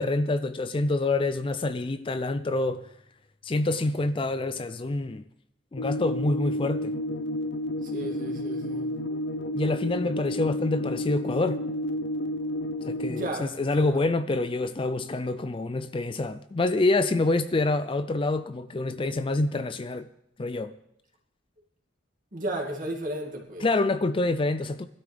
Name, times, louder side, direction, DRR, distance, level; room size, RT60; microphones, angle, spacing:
voice 1, 0.0-2.9 3.4-5.2 5.7-6.9 9.5-11.6 12.9-20.1 20.4-20.7 23.6-24.9, left 2 dB, 25° left, 0.4 m, -26 dB
sound 1, 5.8-13.3, left 1 dB, 65° left, 0.8 m, -31 dB
voice 2, 7.8-9.0 13.1-14.1 22.3-23.7, right 1 dB, 45° right, 2.5 m, -34 dB
21.0 x 12.5 x 3.5 m
head